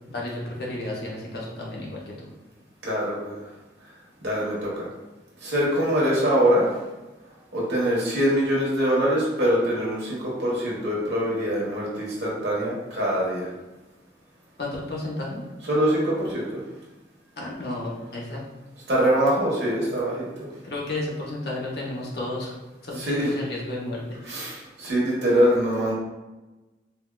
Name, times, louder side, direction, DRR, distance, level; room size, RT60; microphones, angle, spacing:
voice 1, 0.1-2.1 14.6-15.4 17.4-18.4 20.6-22.5 22.8-24.2, left 2 dB, 60° left, -4 dB, 0.8 m, -32 dB
voice 2, 2.8-3.4 4.2-4.9 5.4-6.7 7.5-13.5 15.6-16.6 18.9-20.5 22.9-23.4 24.2-25.9, equal, 80° right, -5 dB, 1.2 m, -23 dB
4.2 x 2.3 x 2.2 m, 1.1 s
head